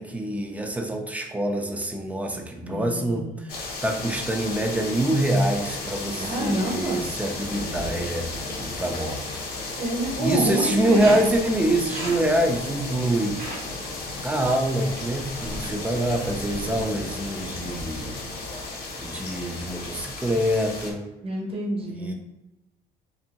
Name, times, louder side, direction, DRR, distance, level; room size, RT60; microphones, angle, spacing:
voice 1, 0.0-8.3 8.6-9.2 10.2-13.4 14.2-18.2 19.0-21.0 22.0-22.1, right 1 dB, 10° right, 3 dB, 0.4 m, -25 dB
voice 2, 2.6-3.5 6.3-7.1 9.8-11.1 21.2-22.1, right 1 dB, 35° right, -1 dB, 0.8 m, -28 dB
sound 1, 3.5-20.9, left 3 dB, 65° left, 0.8 m, -34 dB
sound 2, 11.0-16.8, right 1 dB, 60° right, 1.3 m, -38 dB
2.6 x 2.5 x 2.8 m, 0.97 s
cardioid pair, 110°, 17 cm